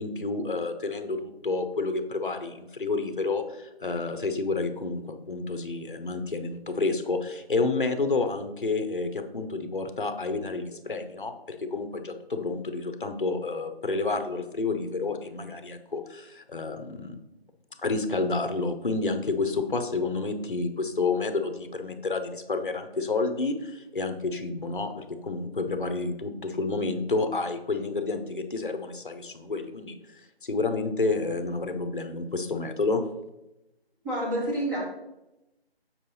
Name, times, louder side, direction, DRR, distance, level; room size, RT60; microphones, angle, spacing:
voice 1, 0.0-5.0 5.3-17.2 17.8-29.9 30.4-33.0, left 3 dB, 55° left, 8 dB, 0.8 m, -29 dB
voice 2, 34.0-34.8, right 1 dB, 20° right, -11 dB, 2.3 m, -28 dB
7.4 x 4.8 x 4.1 m, 0.94 s
figure-of-eight pair, 175°, 32 cm